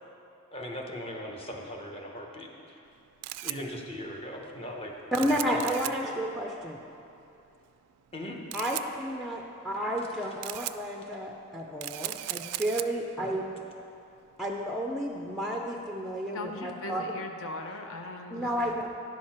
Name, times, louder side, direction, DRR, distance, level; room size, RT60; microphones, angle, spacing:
voice 1, 0.5-2.8 3.4-4.9 5.2-6.2 8.1-8.4 13.2-13.4, left 1 dB, 25° left, 0 dB, 0.9 m, -40 dB
Camera, 2.8-16.2, right 15 dB, 85° right, 0.3 m, -41 dB
voice 2, 5.1-6.8 8.5-13.4 14.4-17.1 18.3-18.9, equal, ahead, 0 dB, 0.4 m, -31 dB
voice 3, 16.3-18.7, left 2 dB, 60° left, 4 dB, 0.7 m, -39 dB
10.5 x 6.4 x 4.3 m, 2.7 s
head